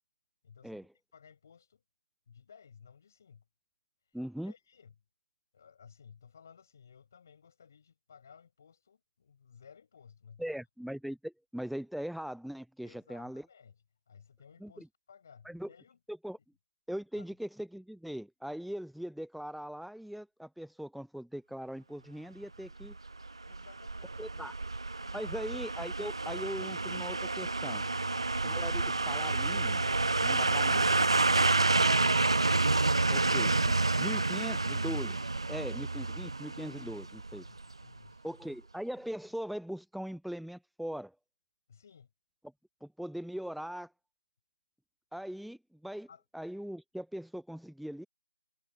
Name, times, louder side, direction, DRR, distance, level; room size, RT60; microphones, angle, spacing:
voice 1, 0.4-1.8 2.3-3.4 4.0-4.2 4.4-4.9 5.5-10.6 12.8-13.7 14.1-16.0 17.1-17.3 23.4-24.6 25.0-25.3 37.4-38.2 41.7-42.1 46.1-46.2, left 7 dB, 30° left, 6.7 m, -57 dB
voice 2, 4.1-4.5 10.4-13.5 14.6-14.9 15.5-15.7 16.1-16.4 16.9-23.0 24.2-24.5 25.1-27.8 28.4-29.8 30.2-30.8 33.1-37.5 38.2-41.1 42.8-43.9 45.1-46.1 46.3-48.1, equal, ahead, 0.3 m, -40 dB
sound 1, 22.8-37.7 38.0-38.1, right 3 dB, 60° right, 1.2 m, -29 dB
figure-of-eight pair, 160°, 3 cm